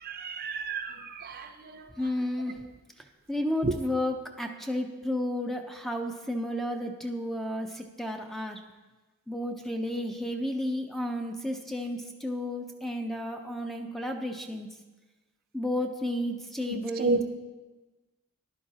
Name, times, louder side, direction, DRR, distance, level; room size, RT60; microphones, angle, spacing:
voice 1, 0.0-1.8 3.6-3.7 17.0-17.2, right 3 dB, 40° right, 7 dB, 0.6 m, -31 dB
voice 2, 2.0-2.6 3.0-8.6 9.3-14.8 15.5-17.2, left 1 dB, ahead, 3 dB, 0.5 m, -32 dB
14.0 x 11.0 x 2.8 m, 1.2 s
head